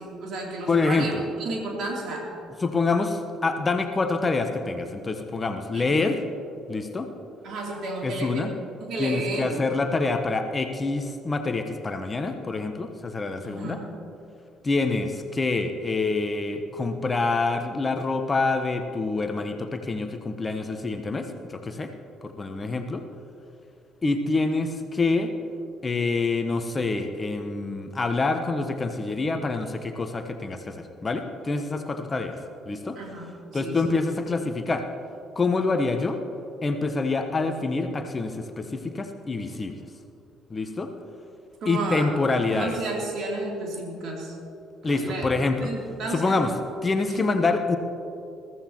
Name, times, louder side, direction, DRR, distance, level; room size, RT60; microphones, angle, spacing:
voice 1, 0.0-2.3 5.7-6.0 7.4-8.5 8.8-9.7 13.4-14.0 32.9-33.3 33.6-33.8 41.6-42.1 42.5-44.4 44.9-45.3 45.5-46.4 47.2-47.4, right 2 dB, 55° right, -1 dB, 3.2 m, -32 dB
voice 2, 0.7-1.2 2.6-6.2 6.7-7.1 8.0-8.5 9.0-13.8 14.6-21.9 22.2-23.0 24.0-25.3 25.8-32.4 32.7-33.0 33.5-34.8 35.3-36.2 36.6-39.8 40.5-40.9 41.7-42.7 44.8-45.6 46.1-46.5 46.8-47.8, left 3 dB, 30° left, 7 dB, 1.1 m, -26 dB
21.5 x 14.0 x 3.0 m, 2.7 s
figure-of-eight pair, 50°, 0 cm